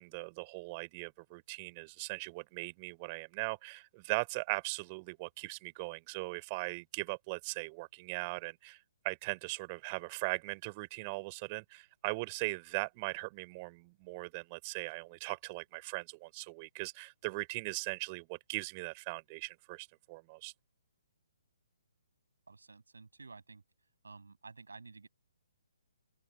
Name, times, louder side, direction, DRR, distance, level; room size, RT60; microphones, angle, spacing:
voice 1, 0.0-8.8 9.0-20.5, right 27 dB, 25° right, 3.6 m, -39 dB
voice 2, 22.5-23.6 24.0-25.1, right 4 dB, 65° right, 6.3 m, -52 dB
open air
figure-of-eight pair, 130°, 0 cm